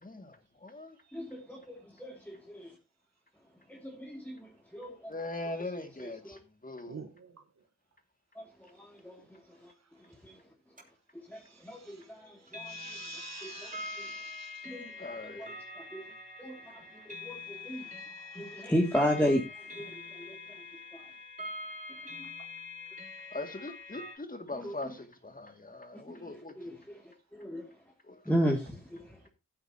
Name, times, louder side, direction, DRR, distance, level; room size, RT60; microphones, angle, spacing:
voice 1, 0.6-0.9 5.1-6.4 6.6-7.0 15.0-15.4 23.3-26.5 28.1-28.2, left 2 dB, 30° left, 2.2 m, -40 dB
voice 2, 1.1-2.7 3.7-5.2 5.4-6.4 8.4-8.5 8.8-9.2 9.6-9.7 10.2-10.4 11.3-12.7 13.4-13.8 14.7-14.8 15.3-16.0 16.4-16.6 17.1-17.8 18.4-20.4 20.9-21.0 22.1-22.3 24.5-24.9 26.1-27.0 27.3-27.6 28.3-29.3, equal, 5° left, 2.3 m, -34 dB
sound 1, 10.8-10.9 12.5-24.2, left 3 dB, 25° right, 3.3 m, -44 dB
voice 3, 12.7-14.6, right 5 dB, 65° right, 1.2 m, -45 dB
15.5 x 8.7 x 2.8 m
cardioid pair, 55°, 29 cm